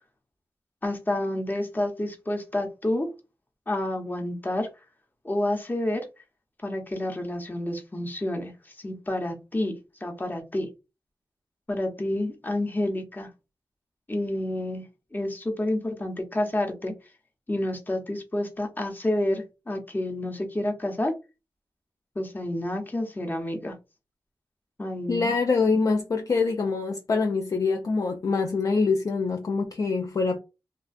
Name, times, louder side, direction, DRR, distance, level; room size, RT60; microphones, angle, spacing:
voice 1, 0.8-3.1 3.7-4.7 5.2-6.0 6.6-8.5 8.8-10.7 11.7-13.3 14.1-14.8 15.1-16.9 17.5-21.1 22.2-23.8 24.8-25.3, left 1 dB, 20° left, 0.8 m, -29 dB
voice 2, 25.1-30.4, left 4 dB, 45° left, 0.3 m, -25 dB
2.5 x 2.3 x 2.3 m
cardioid pair, 65°, 8 cm